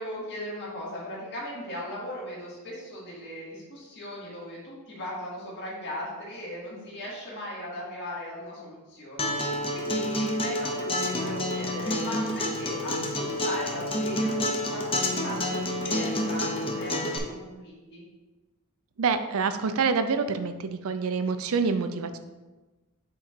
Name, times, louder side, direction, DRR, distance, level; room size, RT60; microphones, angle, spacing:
voice 1, 0.0-18.0, equal, 55° left, -6 dB, 2.1 m, -38 dB
Acoustic guitar, 9.2-17.2, left 1 dB, 25° left, 0.7 m, -29 dB
voice 2, 19.0-22.2, right 5 dB, 70° right, 9 dB, 0.5 m, -26 dB
7.5 x 3.8 x 4.4 m, 1.2 s
head